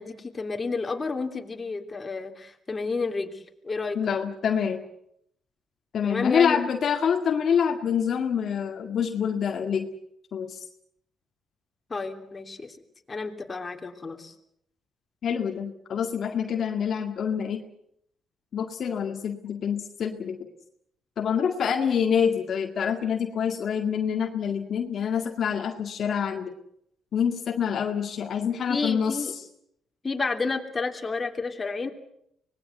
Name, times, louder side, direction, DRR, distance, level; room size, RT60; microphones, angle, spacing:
voice 1, 0.0-4.0 6.0-6.6 11.9-12.8 13.1-14.3 28.7-29.3 30.0-31.9, left 4 dB, 25° left, 3 dB, 3.1 m, -31 dB
voice 2, 4.0-4.8 5.9-9.9 10.3-10.6 15.2-17.6 18.5-20.5 21.2-26.5 27.1-29.4, left 7 dB, 60° left, 4 dB, 1.9 m, -26 dB
25.0 x 20.0 x 8.1 m, 0.74 s
cardioid pair, 90°, 0 cm